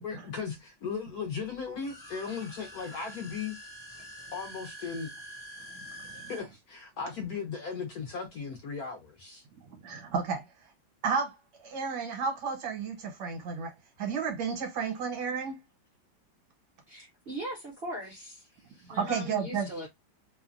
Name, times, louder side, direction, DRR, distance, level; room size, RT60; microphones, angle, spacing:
voice 1, 0.0-3.6 4.3-5.1 6.1-9.4 18.7-18.9, left 5 dB, 65° left, 1.0 m, -37 dB
sound 1, 1.7-6.4, right 1 dB, 30° left, 0.9 m, -46 dB
voice 2, 9.7-10.5 11.0-11.4 11.6-13.7 14.0-15.6 19.0-19.7, right 5 dB, 65° right, 1.4 m, -32 dB
voice 3, 16.9-18.4 18.9-19.9, equal, 50° right, 0.8 m, -39 dB
3.1 x 2.1 x 2.4 m
omnidirectional pair, 2.0 m